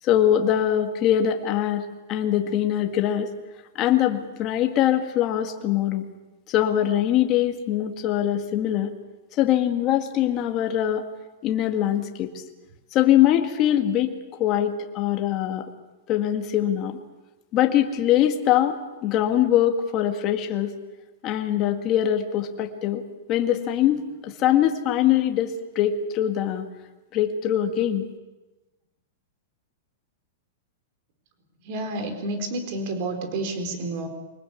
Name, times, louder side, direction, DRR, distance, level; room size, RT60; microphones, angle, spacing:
voice 1, 0.0-3.3 3.8-6.0 6.5-8.9 9.4-11.0 11.4-12.3 12.9-15.7 16.1-17.0 17.5-20.7 21.2-23.0 23.3-26.6 27.1-28.0, left 11 dB, 30° left, 4 dB, 1.9 m, -22 dB
voice 2, 31.6-34.1, right 2 dB, 40° right, 6 dB, 4.5 m, -30 dB
24.5 x 19.5 x 8.4 m, 1.1 s
supercardioid pair, 165°, 0 cm